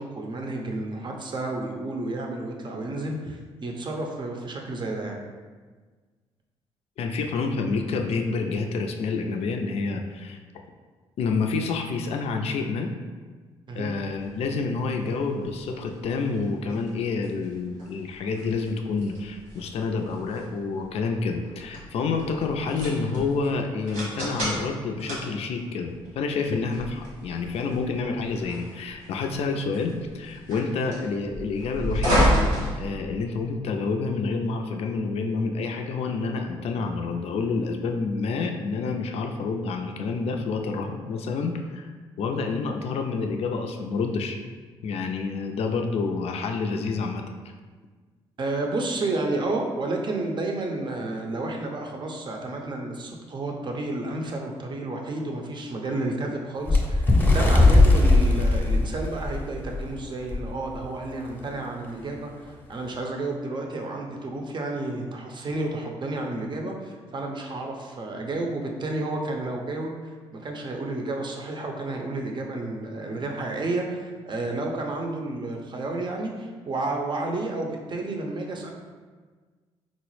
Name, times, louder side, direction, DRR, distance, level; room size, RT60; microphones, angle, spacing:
voice 1, 0.0-5.2 13.7-13.9 48.4-62.3 62.7-78.7, right 2 dB, 40° right, 1 dB, 0.6 m, -31 dB
voice 2, 7.0-10.4 11.2-12.9 13.7-32.3 32.8-41.9 42.2-44.4 44.8-47.2, left 4 dB, 60° left, 3 dB, 0.4 m, -28 dB
sound 1, 14.1-33.5, equal, 90° right, 1.3 m, -32 dB
Bird, 56.7-59.8 60.3-60.5 60.8-61.0 61.8-61.9, left 2 dB, 15° left, 0.7 m, -18 dB
3.9 x 2.0 x 3.1 m, 1.4 s
supercardioid pair, 65°, 12 cm